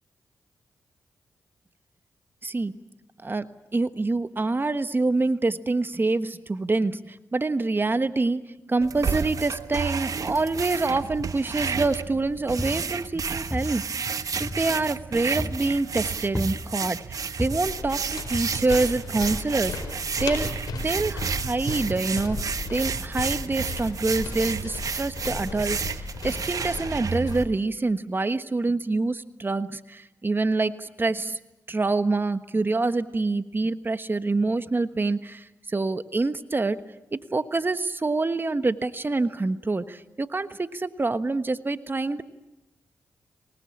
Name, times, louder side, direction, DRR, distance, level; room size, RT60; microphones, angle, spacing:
voice 1, 2.4-2.7 3.2-31.4 31.7-36.8 37.1-42.2, right 3 dB, 30° right, 11 dB, 1.3 m, -26 dB
sound 1, 8.8-27.4, right 6 dB, 60° right, 1.1 m, -31 dB
sound 2, 11.6-12.0 12.4-13.2 13.5-15.0 15.4-15.8 16.4-17.0 17.4-17.8 18.3-18.9 19.3-19.4, left 1 dB, 5° left, 1.1 m, -34 dB
sound 3, 17.4-27.4, left 4 dB, 80° left, 4.6 m, -36 dB
24.5 x 20.0 x 8.7 m, 0.96 s
supercardioid pair, 45°, 7 cm